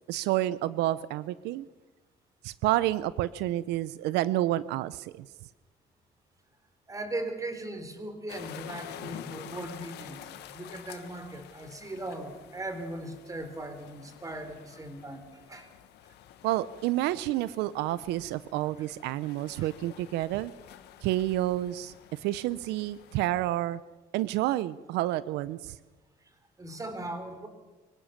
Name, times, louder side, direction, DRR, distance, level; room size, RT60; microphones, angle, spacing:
voice 1, 0.1-1.7 2.4-5.3 16.4-20.5 21.0-23.8 24.1-25.8, right 15 dB, 90° right, 17 dB, 0.6 m, -29 dB
voice 2, 6.9-15.7 19.6-19.7 26.2-26.3 26.6-27.5, right 2 dB, 20° right, 8 dB, 3.7 m, -39 dB
sound 1, 8.3-23.3, left 11 dB, 80° left, 1.6 m, -49 dB
24.0 x 16.5 x 7.2 m, 1.2 s
cardioid pair, 110°, 17 cm